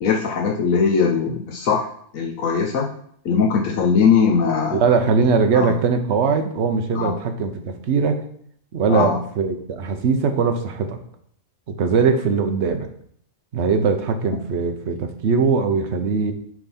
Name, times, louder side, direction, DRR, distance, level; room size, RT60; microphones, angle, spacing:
voice 1, 0.0-1.9 2.1-2.9 3.2-4.8 5.5-5.7 6.9-7.1 8.9-9.2, left 6 dB, 80° left, 0 dB, 1.3 m, -20 dB
voice 2, 4.7-8.2 8.7-11.0 11.7-12.9 13.5-16.3, right 5 dB, 60° right, 6 dB, 1.1 m, -20 dB
8.9 x 3.6 x 4.2 m, 0.64 s
omnidirectional pair, 1.4 m